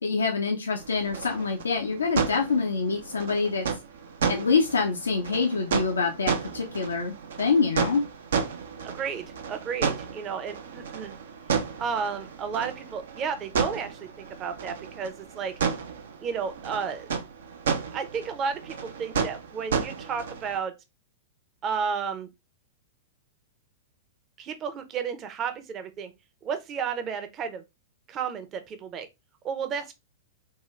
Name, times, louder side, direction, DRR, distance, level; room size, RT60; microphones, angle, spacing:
voice 1, 0.0-3.6 4.3-8.0, left 4 dB, 80° left, 0.6 m, -26 dB
sound 1, 0.8-20.6, right 6 dB, 70° right, 0.5 m, -32 dB
voice 2, 8.8-11.1 11.8-15.5 16.2-17.1 17.9-20.7 21.6-22.3 24.4-26.1 26.4-27.6 28.1-29.1 29.4-29.9, right 6 dB, 30° right, 0.6 m, -32 dB
3.6 x 2.3 x 3.1 m
figure-of-eight pair, 100°, 0 cm